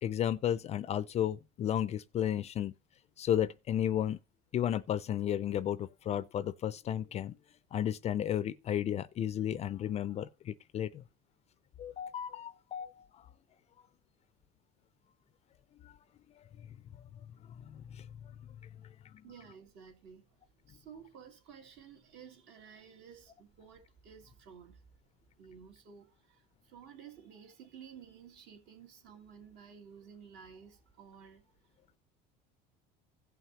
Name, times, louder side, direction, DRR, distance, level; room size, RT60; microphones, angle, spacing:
voice 1, 0.0-2.7 3.2-4.2 4.5-7.3 7.7-11.0 11.8-13.1 17.7-18.1, left 10 dB, 35° left, 0.4 m, -33 dB
voice 2, 19.2-20.4 20.7-24.8 25.4-31.5, right 7 dB, 65° right, 2.9 m, -53 dB
16.5 x 5.7 x 2.8 m
cardioid pair, 135°, 20 cm